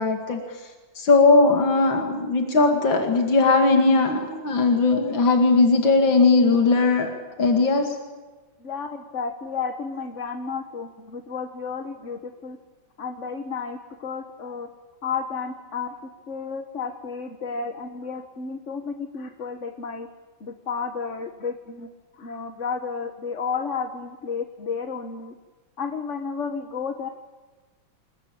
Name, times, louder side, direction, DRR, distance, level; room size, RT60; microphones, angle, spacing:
voice 1, 0.0-7.1 7.4-8.0, left 3 dB, 85° left, 3 dB, 3.1 m, -19 dB
voice 2, 8.6-12.6 13.0-14.7 15.0-16.0 16.3-20.1 20.4-21.9 22.2-25.3 25.8-27.1, left 5 dB, 40° left, 6 dB, 1.8 m, -32 dB
29.0 x 21.0 x 8.8 m, 1.3 s
omnidirectional pair, 2.0 m